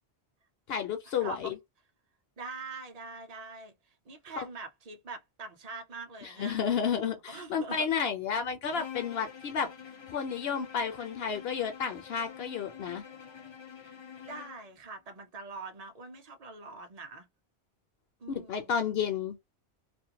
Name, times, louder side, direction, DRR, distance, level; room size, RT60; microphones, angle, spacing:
voice 1, 0.7-1.6 4.4-4.5 6.2-9.7 10.1-13.0 18.3-19.4, left 7 dB, 70° left, 0.8 m, -31 dB
voice 2, 1.2-1.5 2.4-3.7 4.1-6.6 7.3-7.9 13.8-14.0 14.3-17.3 18.2-19.0, right 3 dB, 45° right, 0.6 m, -43 dB
Bowed string instrument, 8.7-14.7, left 8 dB, 35° left, 0.5 m, -47 dB
2.5 x 2.1 x 2.8 m
omnidirectional pair, 1.1 m